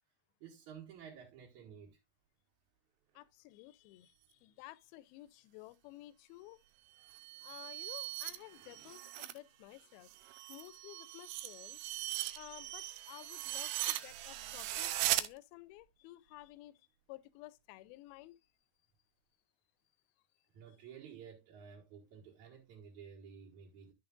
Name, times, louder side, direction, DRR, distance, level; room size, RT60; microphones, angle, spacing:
voice 1, 0.4-2.0 20.5-23.9, right 7 dB, 55° right, 2.7 m, -53 dB
voice 2, 3.2-6.6 7.4-10.1 10.5-11.8 12.4-16.7 17.1-18.4, left 17 dB, 80° left, 2.5 m, -53 dB
sound 1, 7.0-9.4 9.7-15.3, right 14 dB, 80° right, 1.9 m, -39 dB
12.5 x 6.5 x 2.4 m
omnidirectional pair, 4.4 m